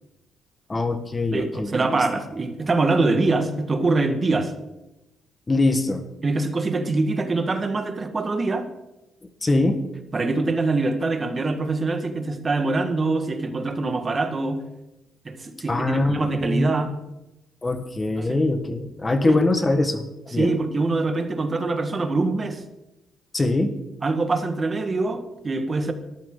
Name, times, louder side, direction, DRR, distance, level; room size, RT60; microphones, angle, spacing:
voice 1, 0.7-2.0 5.5-6.0 9.4-9.8 15.7-16.7 17.6-20.5 23.3-23.7, left 2 dB, 25° left, 8 dB, 1.4 m, -23 dB
voice 2, 1.3-4.5 6.2-8.7 10.1-14.7 15.2-17.0 18.2-18.4 19.2-19.4 20.3-22.6 24.0-25.9, right 3 dB, 30° right, 8 dB, 1.6 m, -24 dB
18.0 x 13.5 x 3.9 m, 0.95 s
cardioid pair, 90°, 0 cm